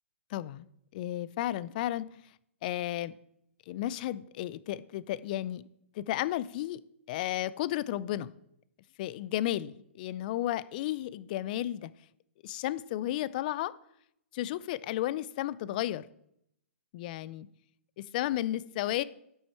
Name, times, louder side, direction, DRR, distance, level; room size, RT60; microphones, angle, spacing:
voice 1, 0.3-0.7 0.9-2.1 2.6-3.1 3.7-5.6 5.9-6.8 7.1-8.3 9.0-11.9 12.4-13.7 14.3-16.1 16.9-17.5 18.0-19.0, left 14 dB, 40° left, 0.4 m, -33 dB
11.0 x 6.3 x 4.6 m
hypercardioid pair, 135°, 7 cm